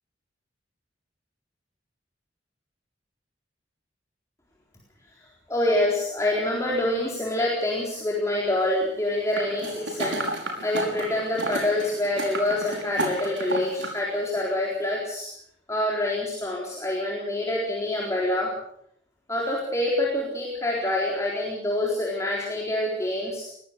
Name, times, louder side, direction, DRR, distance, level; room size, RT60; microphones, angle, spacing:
voice 1, 5.5-10.3 10.6-15.3 15.7-18.5 19.3-23.5, left 1 dB, 15° left, -3 dB, 4.1 m, -26 dB
sound 1, 9.3-14.0 14.4-14.5, right 2 dB, 85° right, 5.6 m, -32 dB
22.0 x 17.5 x 6.8 m, 0.70 s
head